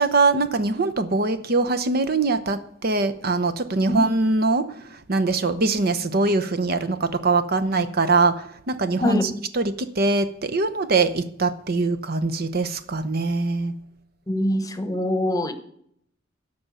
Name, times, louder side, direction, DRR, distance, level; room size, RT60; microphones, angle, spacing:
voice 1, 0.0-4.7 5.1-13.7, right 3 dB, 55° right, 11 dB, 0.9 m, -22 dB
voice 2, 9.0-9.3 14.3-15.5, left 1 dB, 20° left, 10 dB, 1.0 m, -24 dB
13.0 x 5.5 x 9.1 m, 0.66 s
head